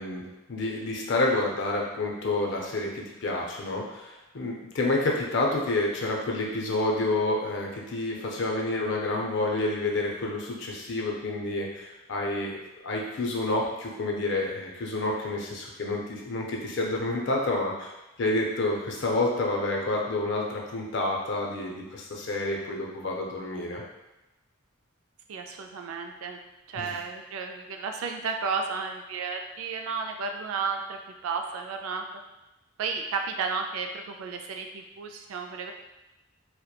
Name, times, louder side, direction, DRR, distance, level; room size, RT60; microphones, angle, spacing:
voice 1, 0.0-17.9 18.2-23.8 26.7-26.9, left 2 dB, 60° left, -1 dB, 0.5 m, -29 dB
voice 2, 25.3-26.4 26.7-32.0 32.8-35.7, right 5 dB, 85° right, 4 dB, 0.3 m, -33 dB
2.8 x 2.1 x 2.2 m, 1.0 s
head